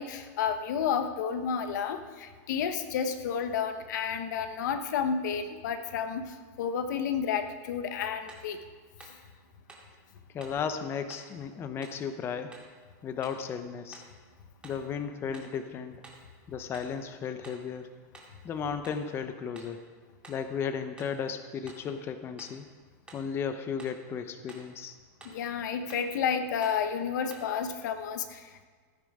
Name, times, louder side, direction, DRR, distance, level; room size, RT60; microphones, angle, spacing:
voice 1, 0.0-8.6 25.2-28.6, left 7 dB, 80° left, 9 dB, 1.1 m, -31 dB
sound 1, 8.3-8.5 9.0-9.2 9.7-9.9 10.4-10.6 11.1-11.3 11.8-12.0 12.5-12.7 13.2-13.5 13.9-14.2 14.6-14.9 15.3-15.6 16.0-16.3 16.7-17.0 17.4-17.7 18.1-18.4 18.8-19.1 19.6-19.8 20.2-20.5 21.0-21.2 21.7-21.9 22.4-22.6 23.1-23.3 23.8-24.0 24.5-24.7 25.2-25.5 25.9-26.1 26.6-26.8 27.3-27.6, right 2 dB, 10° right, 2.1 m, -51 dB
voice 2, 10.3-12.6 13.0-14.0 14.6-16.0 16.5-17.9 18.4-19.8 20.3-22.6 23.1-24.9, left 6 dB, 25° left, 9 dB, 0.7 m, -35 dB
15.5 x 9.2 x 4.9 m, 1.5 s
supercardioid pair, 150°, 10 cm